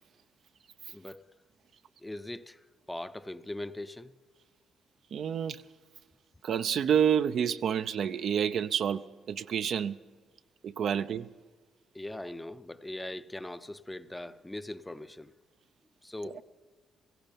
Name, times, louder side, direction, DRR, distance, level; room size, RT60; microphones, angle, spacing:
voice 1, 0.9-1.2 2.0-2.6 2.9-4.1 11.9-15.3 16.0-16.4, left 1 dB, 10° left, 0.6 m, -40 dB
voice 2, 5.1-5.6 6.4-9.0 9.3-10.0 10.6-11.3, right 8 dB, 65° right, 0.6 m, -28 dB
17.0 x 15.5 x 5.3 m
cardioid pair, 90°, 0 cm